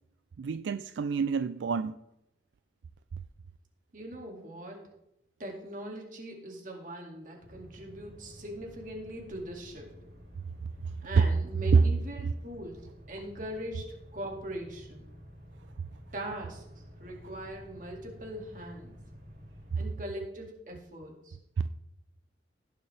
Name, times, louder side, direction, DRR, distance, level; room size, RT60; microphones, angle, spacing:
voice 1, 0.4-2.0 10.8-11.3 11.7-11.9, right 5 dB, 80° right, 0.3 m, -26 dB
voice 2, 3.9-4.8 5.4-9.9 11.0-15.1 16.1-16.6 17.0-19.0 19.7-21.4, right 1 dB, 45° right, 2.3 m, -41 dB
sound 1, 7.4-19.9, equal, 60° right, 4.4 m, -51 dB
16.5 x 6.7 x 3.4 m
head